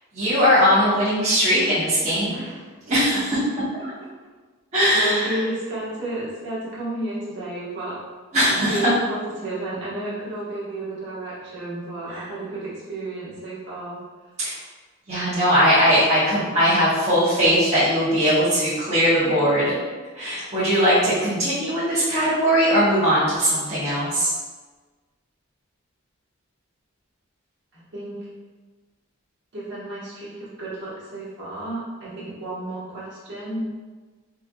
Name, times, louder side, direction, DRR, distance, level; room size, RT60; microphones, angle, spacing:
voice 1, 0.1-2.4 2.9-3.4 4.7-5.4 8.3-8.9 12.1-12.2 14.4-14.5 15.1-19.8 20.1-24.3, equal, 30° right, -13 dB, 1.0 m, -20 dB
voice 2, 2.2-2.7 4.9-8.0 8.5-14.0 19.0-19.5 27.7-28.2 29.5-33.6, right 1 dB, 50° right, -9 dB, 1.3 m, -32 dB
3.8 x 3.3 x 2.3 m, 1.3 s
head